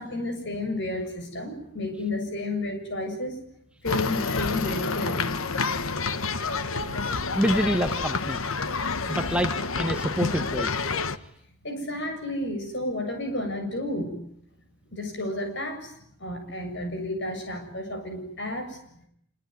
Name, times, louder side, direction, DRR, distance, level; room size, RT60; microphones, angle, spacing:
voice 1, 0.0-3.4 3.8-5.3 11.6-14.2 14.9-18.8, left 1 dB, 55° left, 5 dB, 7.2 m, -31 dB
sound 1, 3.9-11.2, left 4 dB, 70° left, 1.3 m, -28 dB
voice 2, 7.3-8.4 9.1-10.7, equal, 5° right, 7 dB, 1.3 m, -26 dB
26.0 x 23.0 x 9.6 m, 0.71 s
head